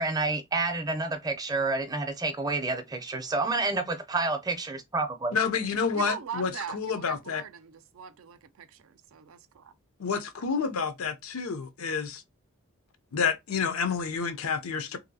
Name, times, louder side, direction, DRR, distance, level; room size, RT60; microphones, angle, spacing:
voice 1, 0.0-5.4, right 3 dB, 20° right, 0.5 m, -29 dB
voice 2, 5.3-7.4 10.0-12.2 13.1-15.0, left 5 dB, 85° left, 0.6 m, -29 dB
voice 3, 5.9-9.7, right 7 dB, 75° right, 0.4 m, -41 dB
2.7 x 2.6 x 2.6 m
head